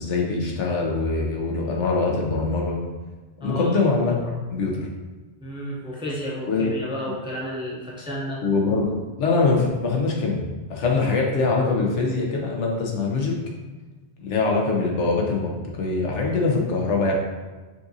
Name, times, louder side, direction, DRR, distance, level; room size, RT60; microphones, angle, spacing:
voice 1, 0.0-2.8 3.4-4.9 6.5-6.7 8.4-10.4 10.7-13.3 14.2-17.1, left 3 dB, 90° left, -1 dB, 1.1 m, -23 dB
voice 2, 3.4-3.8 5.4-8.4, equal, 5° right, -4 dB, 0.5 m, -32 dB
5.7 x 2.5 x 2.7 m, 1.3 s
omnidirectional pair, 1.2 m